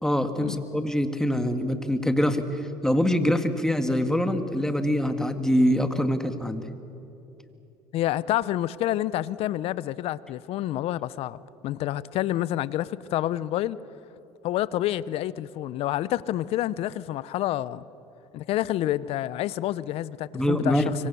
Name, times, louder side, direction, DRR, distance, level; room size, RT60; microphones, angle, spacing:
voice 1, 0.0-6.6 20.3-20.9, equal, 5° left, 2.0 m, -24 dB
voice 2, 7.9-11.4 11.6-13.8 14.4-17.8 18.3-20.9, left 14 dB, 60° left, 0.7 m, -28 dB
25.5 x 23.5 x 6.9 m
supercardioid pair, 85°, 11 cm